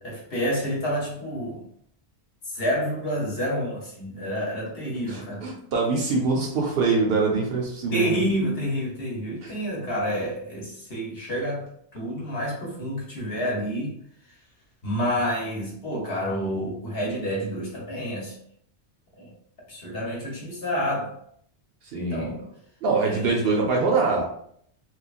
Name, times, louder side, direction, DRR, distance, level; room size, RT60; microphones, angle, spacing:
voice 1, 0.0-1.7 2.5-5.5 7.9-14.0 14.8-18.4 19.2-19.3 19.7-21.1 22.1-22.4 23.0-23.4, equal, 60° left, -3 dB, 1.0 m, -29 dB
voice 2, 5.1-8.2 9.4-9.5 21.8-22.4 22.8-24.3, right 3 dB, 65° right, 0 dB, 0.7 m, -24 dB
3.1 x 2.1 x 2.3 m, 0.65 s
omnidirectional pair, 1.2 m